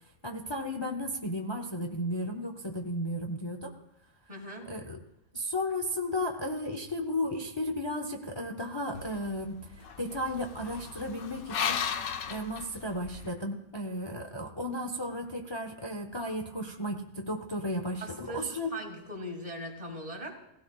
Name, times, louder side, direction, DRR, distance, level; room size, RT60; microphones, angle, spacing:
voice 1, 0.2-3.7 4.7-5.0 5.3-11.8 12.3-18.7, left 1 dB, 25° left, 3 dB, 0.6 m, -34 dB
voice 2, 4.3-4.7 18.0-20.4, equal, 25° right, 1 dB, 1.9 m, -40 dB
sound 1, 8.9-13.3, left 7 dB, 80° left, 1.2 m, -36 dB
17.0 x 16.5 x 2.3 m, 0.83 s
omnidirectional pair, 1.5 m